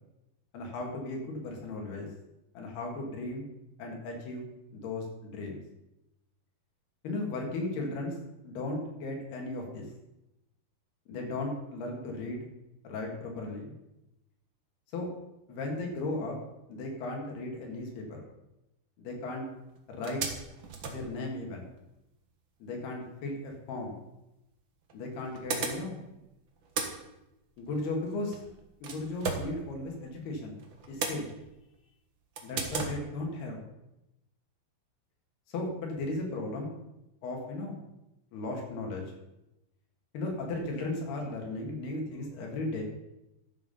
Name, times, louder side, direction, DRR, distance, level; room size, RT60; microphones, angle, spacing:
voice 1, 0.5-2.1 2.6-3.4 3.8-4.5 4.7-5.6 7.0-8.2 8.4-9.9 11.1-12.5 12.8-13.7 14.9-15.1 15.5-16.4 16.7-18.2 19.0-19.5 19.9-20.2 20.8-21.6 22.6-24.0 24.9-26.0 27.6-28.4 28.8-30.6 30.9-31.3 32.4-33.6 35.5-36.7 37.2-37.8 38.3-39.1 40.1-42.8, left 2 dB, 80° left, 1 dB, 4.1 m, -36 dB
sound 1, 19.3-19.4 19.7-19.8 20.0-21.9 23.9-24.0 24.9-26.2 26.5-30.2 30.6-31.7 32.3-33.0, right 5 dB, 75° right, 1.1 m, -37 dB
12.5 x 7.6 x 5.6 m, 0.92 s
omnidirectional pair, 4.5 m